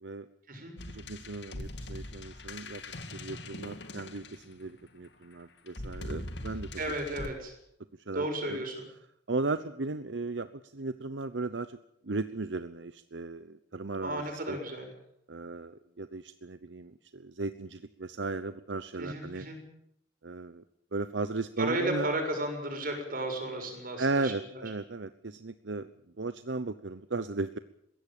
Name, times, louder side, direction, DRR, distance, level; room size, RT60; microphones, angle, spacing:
sound 1, 0.8-4.8 5.7-7.3, left 1 dB, 65° left, 2.0 m, -42 dB
voice 1, 0.9-2.8 3.1-6.7 8.1-8.6 9.3-11.8 12.0-14.6 15.3-19.5 20.2-20.6 20.9-22.1 24.0-25.9 26.2-27.6, right 3 dB, 75° right, 12 dB, 0.9 m, -36 dB
voice 2, 6.8-7.5 8.1-8.9 14.0-14.9 19.0-19.6 21.6-24.6, right 1 dB, 50° right, 4 dB, 6.8 m, -34 dB
22.0 x 17.0 x 8.9 m, 0.74 s
head